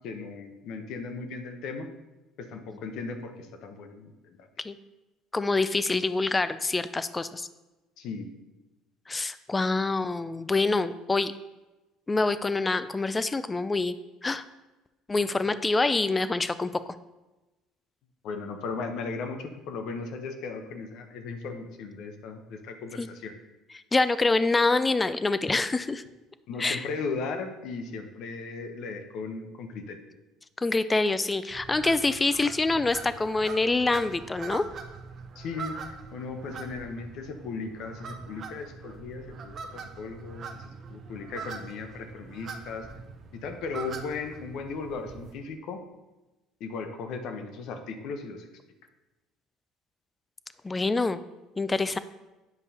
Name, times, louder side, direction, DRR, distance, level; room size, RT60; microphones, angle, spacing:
voice 1, 0.0-1.9 2.4-4.4 8.0-8.3 18.2-23.3 26.5-30.0 35.3-42.9 43.3-45.8 46.6-48.5, left 4 dB, 65° left, 6 dB, 0.8 m, -37 dB
voice 2, 5.3-7.5 9.1-11.3 12.1-14.0 14.2-14.4 15.1-16.7 23.0-23.1 23.9-26.0 26.6-26.8 30.6-34.6 50.6-51.2 51.6-52.0, left 3 dB, 15° left, 13 dB, 0.3 m, -26 dB
sound 1, 31.5-45.3, right 5 dB, 45° right, 0.7 m, -43 dB
8.0 x 5.3 x 2.8 m, 1.1 s
supercardioid pair, 105°, 0 cm